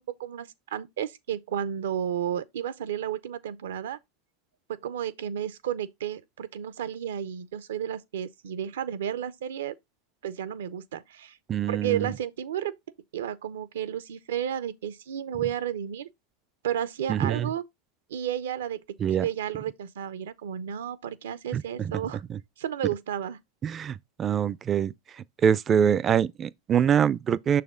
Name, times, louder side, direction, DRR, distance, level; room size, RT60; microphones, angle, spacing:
voice 1, 0.0-4.0 4.7-9.7 10.2-11.4 11.7-12.7 13.1-16.1 16.6-17.6 18.1-22.2 22.6-23.4, right 10 dB, 75° right, 0.6 m, -32 dB
voice 2, 11.5-12.1 17.1-17.5 19.0-19.2 21.5-21.9 22.3-22.4 23.6-24.9 25.4-27.6, right 8 dB, 30° right, 0.4 m, -24 dB
6.6 x 4.2 x 3.7 m
hypercardioid pair, 100°, 0 cm